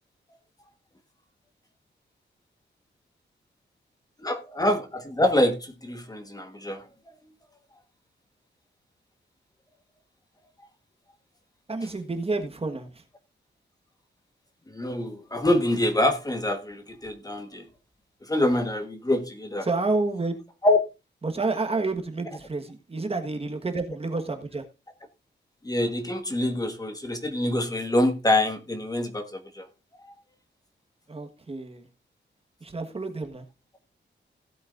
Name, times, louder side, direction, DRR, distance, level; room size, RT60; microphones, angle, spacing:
voice 1, 4.2-6.8 14.7-17.7 18.2-19.7 20.6-20.8 25.6-29.7 30.0-30.1, left 1 dB, 20° left, 1.4 m, -25 dB
voice 2, 11.7-12.9 19.6-20.3 21.2-24.6 31.1-31.8 32.6-33.4, right 3 dB, 30° right, 1.4 m, -29 dB
16.5 x 8.4 x 2.6 m
wide cardioid pair, 125°, 19 cm